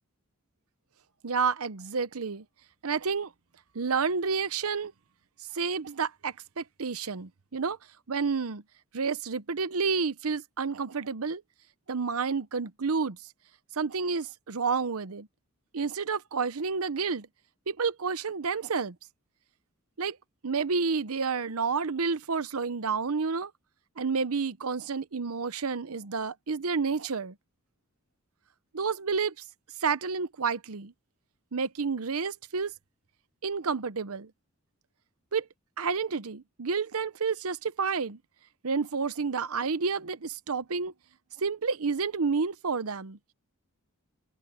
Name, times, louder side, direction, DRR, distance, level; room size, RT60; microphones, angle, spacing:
voice 1, 1.2-2.4 2.8-3.3 3.7-4.9 5.5-7.8 8.1-8.6 8.9-11.4 11.9-13.2 13.8-15.3 15.7-17.3 17.7-19.0 20.0-20.2 20.4-23.5 24.0-27.3 28.7-29.3 29.8-30.9 31.5-32.7 33.4-34.3 35.3-35.5 35.8-38.2 38.6-40.9 41.4-43.2, right 5 dB, 85° right, 0.8 m, -30 dB
open air
head